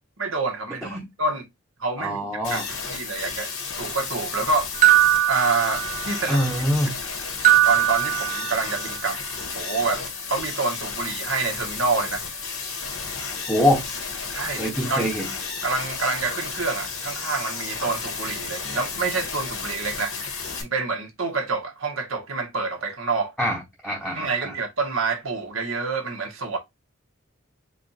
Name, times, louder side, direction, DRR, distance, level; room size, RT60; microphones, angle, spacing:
voice 1, 0.2-0.9 1.2-1.4 1.8-2.2 2.5-2.6 2.9-3.5 3.8-4.7 5.3-6.4 7.6-9.2 9.5-10.0 10.3-12.2 14.3-15.1 15.6-20.2 20.6-23.3 24.1-26.6, right 3 dB, 75° right, 1.4 m, -27 dB
voice 2, 2.0-2.7 6.3-6.9 13.5-13.8 14.6-15.3 23.4-24.5, equal, ahead, 0.9 m, -24 dB
sound 1, 2.4-20.6, left 5 dB, 90° left, 1.8 m, -32 dB
sound 2, 4.8-6.3 7.4-8.9, right 13 dB, 40° right, 1.0 m, -20 dB
4.9 x 2.4 x 4.1 m
head